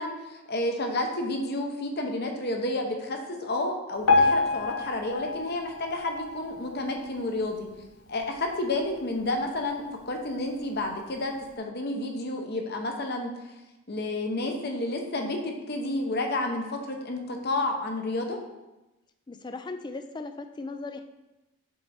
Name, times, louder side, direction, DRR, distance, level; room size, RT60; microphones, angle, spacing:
voice 1, 0.0-7.7 8.1-13.3 13.9-18.4, left 2 dB, 50° left, 3 dB, 0.9 m, -30 dB
Piano, 4.1-7.2 7.7-7.8 8.1-8.2 9.0-9.1 9.6-9.7, left 3 dB, 85° left, 0.9 m, -26 dB
voice 2, 19.3-21.0, left 3 dB, 20° left, 8 dB, 0.3 m, -37 dB
7.5 x 4.3 x 4.3 m, 1.0 s
head